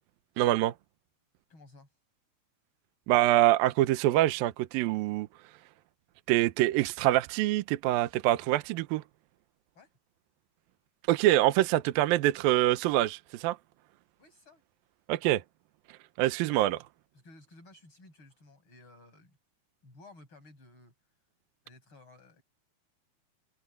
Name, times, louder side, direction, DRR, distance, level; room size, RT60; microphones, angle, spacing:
voice 1, 0.4-0.7 3.1-5.3 6.3-9.0 11.1-13.6 15.1-15.4 16.2-16.8, right 15 dB, 75° right, 2.2 m, -25 dB
voice 2, 1.5-2.0 9.7-9.9 14.2-14.6 17.1-19.4 19.8-20.9 21.6-22.4, left 2 dB, 30° left, 8.5 m, -55 dB
omnidirectional pair, 4.9 m